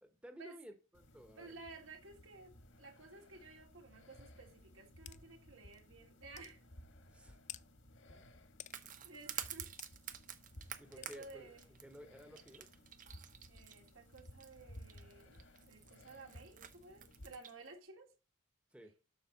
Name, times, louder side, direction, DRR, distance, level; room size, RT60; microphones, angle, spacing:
voice 1, 0.0-1.5 7.1-7.4 8.1-8.3 10.8-11.6 11.8-12.7 18.7-18.9, equal, 5° right, 1.0 m, -55 dB
sound 1, 0.9-17.4, equal, 70° left, 1.7 m, -59 dB
voice 2, 1.4-6.6 9.0-9.7 10.9-11.6 13.5-18.1, right 3 dB, 80° right, 2.5 m, -55 dB
sound 2, 5.1-5.2 5.7-5.8 6.4-6.5 7.5-7.6 8.6-8.8 9.8-9.9 11.0-11.2, left 12 dB, 35° left, 0.4 m, -50 dB
sound 3, 8.7-17.7, right 10 dB, 40° right, 0.8 m, -49 dB
11.5 x 6.5 x 4.0 m
head